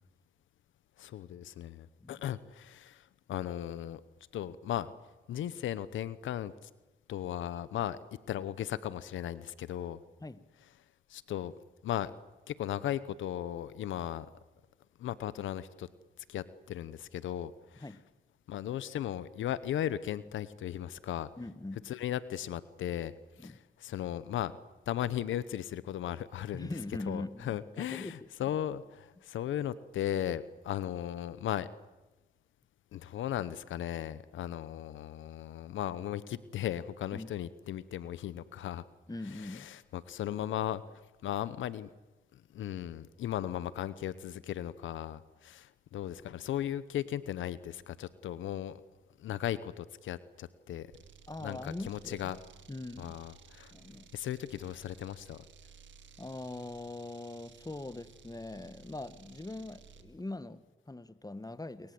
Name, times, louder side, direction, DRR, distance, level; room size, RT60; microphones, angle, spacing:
voice 1, 1.0-4.0 4.3-4.9 5.3-6.7 7.1-8.0 8.3-10.0 11.1-11.5 11.8-12.1 12.5-14.3 15.0-15.9 16.3-17.8 18.5-21.3 21.9-23.1 23.4-23.5 23.8-24.5 24.9-26.7 27.1-31.7 32.9-38.8 39.3-40.8 41.2-41.9 42.3-48.8 49.2-50.9 51.4-52.4 53.0-53.7 54.1-55.4, left 11 dB, 85° left, 16 dB, 0.9 m, -36 dB
voice 2, 21.4-21.8 23.4-23.6 26.5-28.5 37.1-37.3 39.1-39.7 51.3-52.3 52.7-53.2 53.7-54.1 56.2-61.9, left 2 dB, 20° left, 13 dB, 1.9 m, -42 dB
sound 1, 50.9-60.1, right 6 dB, 75° right, 2.2 m, -57 dB
28.0 x 23.0 x 7.9 m, 1.1 s
supercardioid pair, 45°, 20 cm